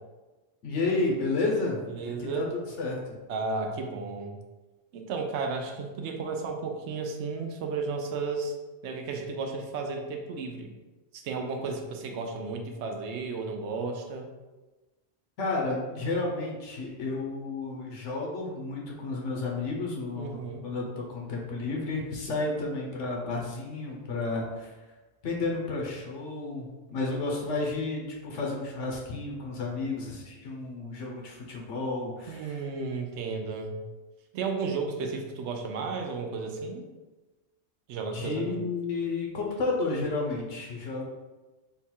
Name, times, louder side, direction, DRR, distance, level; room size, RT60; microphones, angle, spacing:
voice 1, 0.6-1.8 2.2-2.4 2.8-3.2 15.4-24.7 25.2-32.6 38.1-41.1, left 3 dB, 75° left, -2 dB, 1.1 m, -31 dB
voice 2, 1.9-2.5 3.3-4.3 4.9-8.5 8.8-10.7 11.1-14.3 20.2-20.6 32.3-33.7 34.3-36.9 37.9-38.7, right 4 dB, 70° right, 3 dB, 0.9 m, -33 dB
3.9 x 2.3 x 4.3 m, 1.2 s
omnidirectional pair, 1.3 m